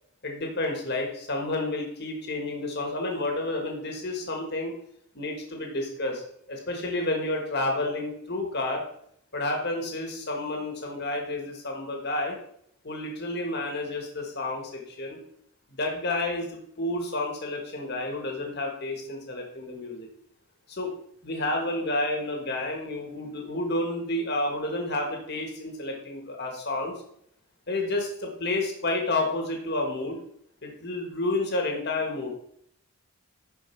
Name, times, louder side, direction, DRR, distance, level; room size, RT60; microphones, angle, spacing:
voice 1, 0.2-4.7 5.1-6.2 6.5-8.8 9.3-12.3 12.8-15.2 15.8-20.1 20.7-20.9 21.2-26.9 27.7-30.2 30.6-32.3, left 2 dB, 50° left, 1 dB, 1.6 m, -30 dB
11.0 x 4.6 x 4.5 m, 0.70 s
head